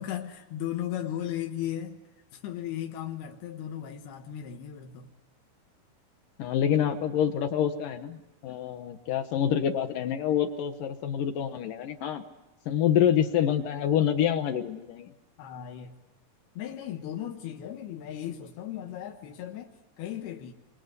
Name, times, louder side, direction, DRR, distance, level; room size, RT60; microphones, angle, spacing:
voice 1, 0.0-2.0 2.3-5.1 15.4-16.0 16.6-20.5, left 11 dB, 90° left, 3 dB, 3.5 m, -36 dB
voice 2, 6.4-8.2 8.4-12.2 12.7-15.1, left 9 dB, 70° left, 7 dB, 2.6 m, -26 dB
28.0 x 24.5 x 8.2 m, 1.0 s
omnidirectional pair, 4.4 m